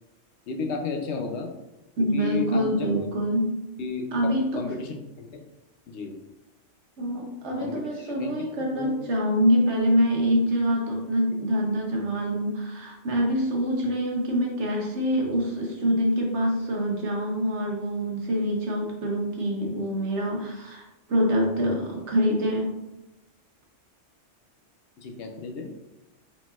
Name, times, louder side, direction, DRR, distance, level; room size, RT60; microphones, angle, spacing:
voice 1, 0.5-1.5 2.0-3.1 3.8-5.4 5.9-6.1 7.6-9.0 13.8-13.9 25.0-25.7, left 4 dB, 70° left, 4 dB, 0.9 m, -33 dB
voice 2, 2.0-3.6 4.1-4.6 7.0-22.7, equal, 70° right, 0 dB, 1.2 m, -25 dB
4.1 x 3.9 x 2.4 m, 0.94 s
omnidirectional pair, 1.3 m